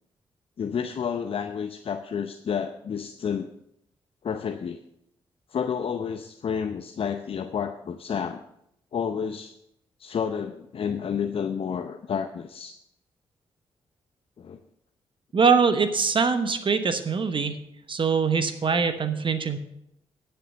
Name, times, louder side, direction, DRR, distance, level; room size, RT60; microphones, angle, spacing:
voice 1, 0.6-3.5 4.2-4.8 5.5-8.4 8.9-9.5 10.0-12.8 14.4-14.6, left 7 dB, 55° left, 8 dB, 0.7 m, -30 dB
voice 2, 15.3-17.6 17.9-19.6, right 5 dB, 50° right, 10 dB, 1.1 m, -23 dB
10.0 x 7.0 x 6.4 m, 0.78 s
supercardioid pair, 45°, 11 cm